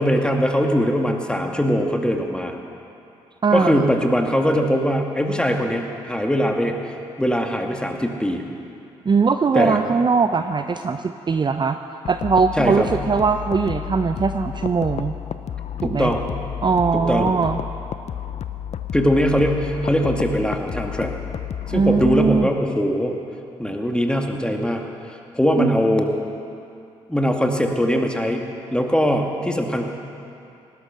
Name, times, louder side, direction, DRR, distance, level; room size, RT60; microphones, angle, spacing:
voice 1, 0.0-2.6 3.5-6.9 7.2-8.4 9.5-9.8 12.6-12.9 15.8-16.2 16.9-17.3 18.9-21.1 21.7-23.1 23.6-24.8 25.3-26.1 27.1-28.5 28.7-29.9, equal, 5° left, 2 dB, 2.2 m, -21 dB
voice 2, 3.4-3.9 9.0-11.8 12.1-15.2 15.8-16.1 16.6-17.6 21.7-22.5 25.6-25.7, right 5 dB, 30° right, 8 dB, 0.6 m, -20 dB
sound 1, 12.1-22.5, left 9 dB, 50° left, 0.7 m, -31 dB
19.0 x 12.0 x 6.2 m, 2.6 s
hypercardioid pair, 45°, 14 cm